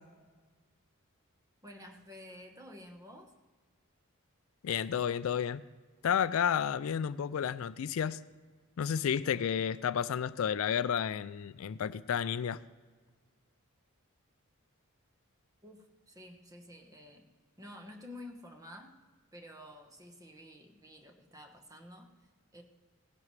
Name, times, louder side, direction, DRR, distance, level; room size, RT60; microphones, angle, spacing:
voice 1, 1.6-3.3 15.6-17.3 17.6-19.0 19.3-22.1 22.5-22.6, left 1 dB, 15° right, 4 dB, 1.0 m, -50 dB
voice 2, 4.6-5.6 6.0-8.2 8.8-12.6, left 8 dB, 70° left, 16 dB, 0.3 m, -31 dB
17.5 x 10.5 x 3.2 m, 1.4 s
head